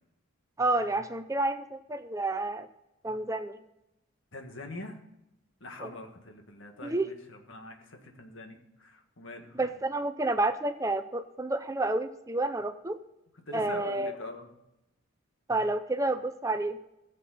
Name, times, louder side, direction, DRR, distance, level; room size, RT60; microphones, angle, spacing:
voice 1, 0.6-2.7 3.0-3.6 5.8-5.9 6.8-7.1 9.5-13.0 13.5-14.1 15.5-16.8, right 2 dB, 15° right, 9 dB, 0.5 m, -30 dB
voice 2, 4.3-5.0 5.6-9.7 13.5-14.5, left 2 dB, 65° left, 4 dB, 1.8 m, -43 dB
15.5 x 7.6 x 4.1 m, 0.87 s
head